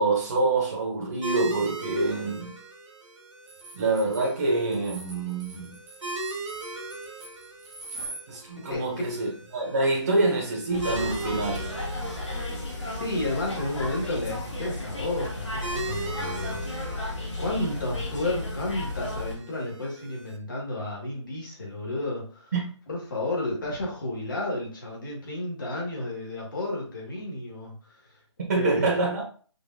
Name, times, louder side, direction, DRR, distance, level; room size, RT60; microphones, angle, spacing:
voice 1, 0.0-2.5 3.7-5.7 8.3-11.7 28.5-29.2, right 2 dB, 35° right, 1.0 m, -26 dB
sound 1, 1.2-20.4, right 2 dB, 85° right, 1.6 m, -39 dB
sound 2, 3.5-8.2, right 2 dB, 10° right, 0.5 m, -42 dB
voice 2, 8.6-9.1 12.9-16.6 17.4-22.5 22.9-27.7 28.5-28.9, left 2 dB, 40° left, 1.9 m, -32 dB
sound 3, 10.7-19.4, left 2 dB, 70° left, 2.0 m, -33 dB
5.2 x 2.8 x 2.7 m
hypercardioid pair, 170°, 16 cm